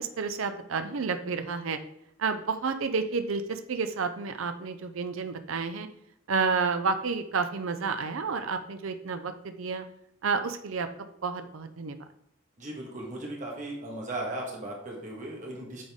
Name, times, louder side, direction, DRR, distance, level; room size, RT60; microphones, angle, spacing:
voice 1, 0.0-1.8 2.2-5.9 6.3-9.8 10.2-12.0, right 5 dB, 65° right, 8 dB, 0.6 m, -30 dB
voice 2, 12.6-15.8, right 1 dB, 35° right, -2 dB, 1.5 m, -37 dB
8.5 x 4.0 x 3.6 m, 0.74 s
head